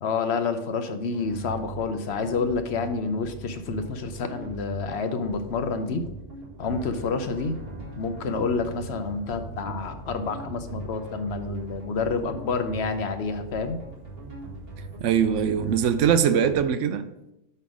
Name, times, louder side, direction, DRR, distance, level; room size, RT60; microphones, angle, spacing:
voice 1, 0.0-6.0 6.6-7.5 8.0-13.8, left 4 dB, 60° left, 0.9 m, -28 dB
sound 1, 1.1-16.6, right 3 dB, 50° right, 2.1 m, -41 dB
sound 2, 6.6-16.6, equal, 25° right, 1.3 m, -44 dB
voice 2, 15.0-17.1, right 8 dB, 75° right, 0.9 m, -22 dB
5.5 x 5.5 x 6.2 m
omnidirectional pair, 1.3 m